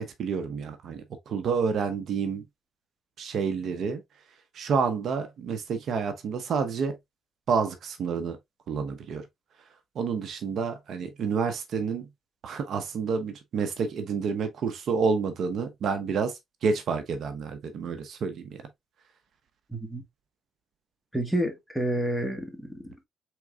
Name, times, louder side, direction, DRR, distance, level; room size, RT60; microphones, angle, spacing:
voice 1, 0.0-2.4 3.2-4.0 4.5-7.0 7.5-8.4 8.7-9.3 9.9-12.1 12.4-18.6, right 5 dB, 65° right, 0.7 m, -29 dB
voice 2, 19.7-20.0 21.1-23.1, right 1 dB, 5° right, 1.4 m, -29 dB
4.5 x 3.6 x 2.4 m
cardioid pair, 90°, 0 cm